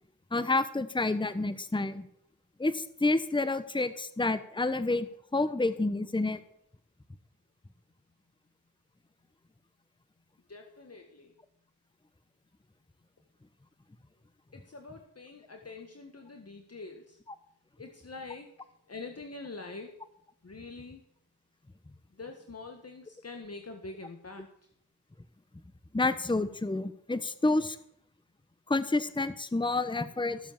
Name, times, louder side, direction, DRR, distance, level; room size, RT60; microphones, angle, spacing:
voice 1, 0.3-2.1 2.6-5.1 5.3-6.4 25.9-27.8 28.7-30.4, left 2 dB, 15° left, 13 dB, 1.0 m, -29 dB
voice 2, 10.5-11.3 14.5-17.2 17.8-20.0 20.4-21.0 22.1-24.5, left 3 dB, 40° left, 4 dB, 1.7 m, -45 dB
14.5 x 7.3 x 7.3 m, 0.70 s
cardioid pair, 50°, 36 cm